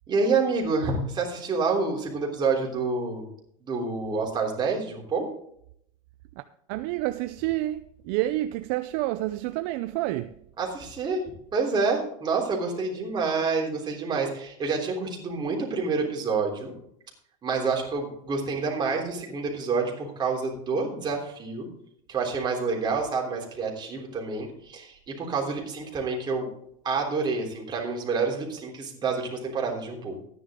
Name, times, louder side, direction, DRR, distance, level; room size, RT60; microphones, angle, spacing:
voice 1, 0.1-3.3 3.6-5.3 10.6-11.2 11.5-16.7 17.4-21.7 22.1-26.5 26.8-30.2, right 4 dB, 25° right, 3.5 m, -28 dB
voice 2, 6.7-10.3, right 16 dB, 55° right, 0.6 m, -29 dB
13.5 x 10.0 x 3.7 m
supercardioid pair, 130°, 18 cm